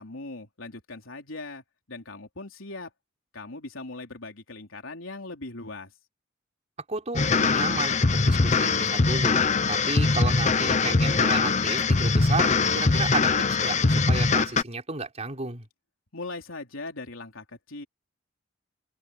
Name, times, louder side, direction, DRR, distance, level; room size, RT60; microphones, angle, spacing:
voice 1, 0.0-2.9 3.3-5.9 16.1-17.8, left 2 dB, 90° left, 3.6 m, -39 dB
voice 2, 6.9-15.7, right 3 dB, 35° right, 4.4 m, -33 dB
sound 1, 7.1-14.6, left 4 dB, 35° left, 0.8 m, -22 dB
open air
head